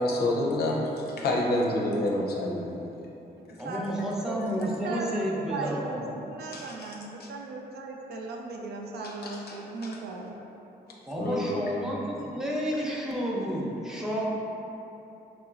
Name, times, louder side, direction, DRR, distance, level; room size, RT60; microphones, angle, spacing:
voice 1, 0.0-2.9 6.5-6.9 7.2-7.3 9.0-9.9 11.2-11.6, left 1 dB, 70° left, -2 dB, 0.5 m, -29 dB
voice 2, 3.6-6.2 11.1-14.3, equal, 5° right, -5 dB, 0.5 m, -31 dB
voice 3, 4.3-10.4, right 3 dB, 75° right, 0 dB, 0.4 m, -37 dB
3.1 x 2.8 x 2.4 m, 2.9 s
cardioid pair, 85°, 17 cm